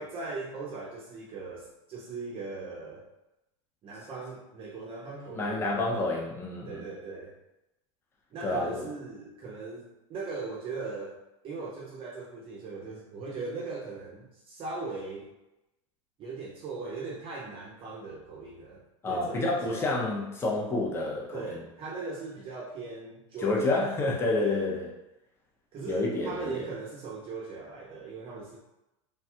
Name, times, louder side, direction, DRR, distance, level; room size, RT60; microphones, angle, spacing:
voice 1, 0.0-3.1 3.8-5.8 6.6-7.3 8.3-11.2 11.4-15.3 16.2-19.9 21.3-23.9 24.4-24.7 25.7-28.6, right 4 dB, 30° right, -3 dB, 0.6 m, -39 dB
voice 2, 5.3-6.8 8.4-8.9 19.0-21.6 23.4-24.9 25.8-26.5, left 2 dB, 15° left, -3 dB, 0.5 m, -29 dB
3.2 x 2.3 x 2.7 m, 0.93 s
supercardioid pair, 125°, 17 cm